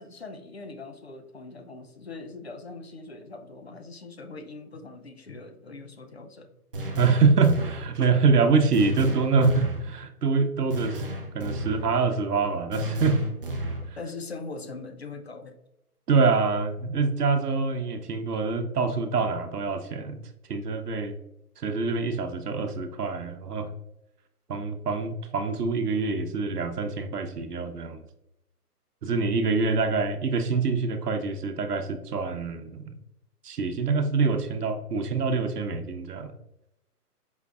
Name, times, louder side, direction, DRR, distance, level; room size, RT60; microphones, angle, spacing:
voice 1, 0.0-6.5 14.0-15.6, left 3 dB, 45° left, 6 dB, 0.5 m, -41 dB
sound 1, 6.7-7.9 8.7-9.9 10.7-11.9 12.7-13.9, equal, 40° right, 0.5 m, -32 dB
voice 2, 7.0-11.1 11.3-13.2 13.9-14.0 16.1-20.2 20.5-21.2 21.6-23.7 24.5-28.0 29.0-32.9 33.4-36.3, right 4 dB, 80° right, 8 dB, 0.8 m, -25 dB
5.1 x 3.4 x 2.4 m, 0.86 s
hypercardioid pair, 155°, 46 cm